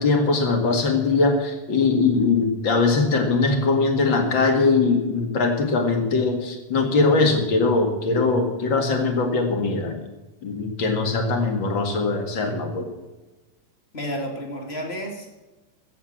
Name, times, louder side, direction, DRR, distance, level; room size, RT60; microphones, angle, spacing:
voice 1, 0.0-10.0 10.4-12.9, left 3 dB, 75° left, 4 dB, 2.7 m, -21 dB
voice 2, 13.9-15.4, equal, 30° left, 1 dB, 2.5 m, -31 dB
14.5 x 8.0 x 7.4 m, 1.1 s
omnidirectional pair, 2.1 m